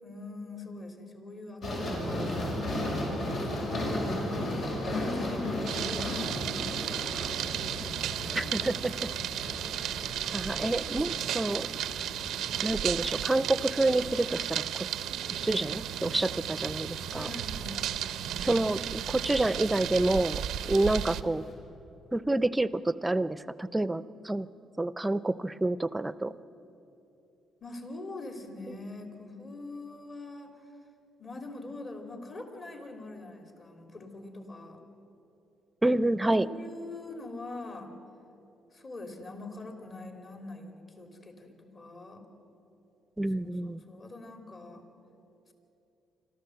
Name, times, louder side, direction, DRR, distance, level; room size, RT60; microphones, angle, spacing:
voice 1, 0.0-2.2 4.8-7.7 8.0-8.4 9.0-9.7 10.3-10.5 17.1-17.9 20.7-20.9 27.6-30.5 31.2-34.8 36.4-37.9 38.7-42.2 43.4-43.5 43.9-44.8, left 2 dB, 40° left, 4 dB, 3.0 m, -43 dB
sound 1, 1.6-21.5, left 1 dB, 70° left, 6.1 m, -37 dB
voice 2, 1.9-2.6 8.3-9.1 10.3-11.7 12.6-14.9 15.4-17.3 18.4-21.4 22.1-24.5 24.8-26.3 28.7-28.8 35.8-36.5 43.2-43.8, right 2 dB, 15° right, 15 dB, 0.6 m, -28 dB
sound 2, 5.7-21.2, right 11 dB, 80° right, 0.6 m, -34 dB
26.0 x 13.5 x 7.8 m, 2.8 s
cardioid pair, 90°, 0 cm